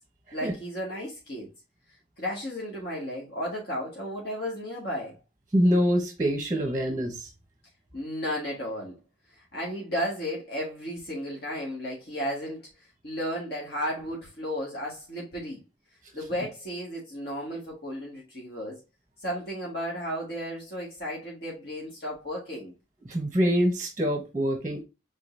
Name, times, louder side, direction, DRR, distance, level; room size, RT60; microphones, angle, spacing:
voice 1, 0.3-1.5 2.2-5.2 7.9-9.0 9.5-12.7 13.0-15.6 16.1-18.8 19.2-22.7, equal, 55° left, 1.7 m, -34 dB
voice 2, 5.5-7.3 23.1-24.8, equal, 15° right, 1.0 m, -25 dB
5.1 x 3.7 x 2.6 m
head